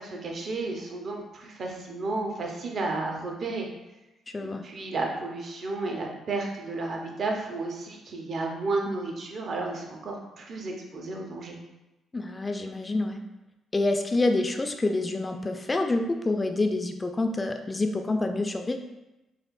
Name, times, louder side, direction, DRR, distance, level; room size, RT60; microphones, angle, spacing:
voice 1, 0.0-3.7 4.6-11.6, right 3 dB, 55° right, 1 dB, 0.7 m, -32 dB
voice 2, 4.3-4.6 12.1-13.2 13.7-18.8, left 2 dB, 30° left, 6 dB, 0.3 m, -27 dB
4.1 x 2.5 x 2.4 m, 0.99 s
hypercardioid pair, 50°, 0 cm